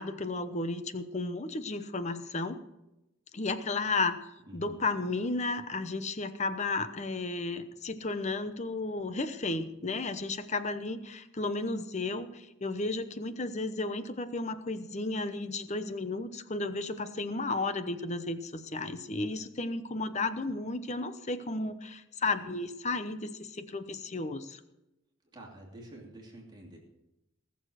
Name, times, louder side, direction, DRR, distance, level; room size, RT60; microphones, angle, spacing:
voice 1, 0.0-2.6 3.3-4.2 4.5-24.6, left 3 dB, 35° left, 11 dB, 0.9 m, -33 dB
voice 2, 4.5-4.8 25.3-26.8, right 1 dB, 20° right, -2 dB, 2.9 m, -48 dB
19.0 x 7.1 x 6.5 m, 0.92 s
head